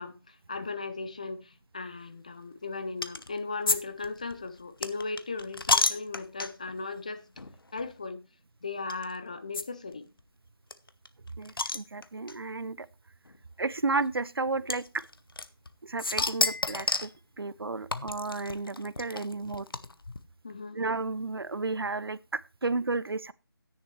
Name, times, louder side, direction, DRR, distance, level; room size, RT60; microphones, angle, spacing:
voice 1, 0.0-7.2 7.7-8.2 8.6-10.1 20.4-20.8, left 3 dB, 20° left, 0.4 m, -37 dB
sound 1, 3.0-3.3 3.7-3.8 4.0-6.7 7.4-7.5 7.8-7.9 8.9-9.0 9.5-9.6 9.9-10.0 10.2-10.3 10.7-12.4 13.3-13.4 14.7-15.7 16.0-17.2 17.9-20.2, left 3 dB, 65° left, 0.9 m, -30 dB
voice 2, 11.4-12.9 13.6-15.0 15.8-17.1 17.4-19.7 20.7-23.3, right 3 dB, 70° right, 0.6 m, -32 dB
11.0 x 10.0 x 3.1 m
figure-of-eight pair, 160°, 13 cm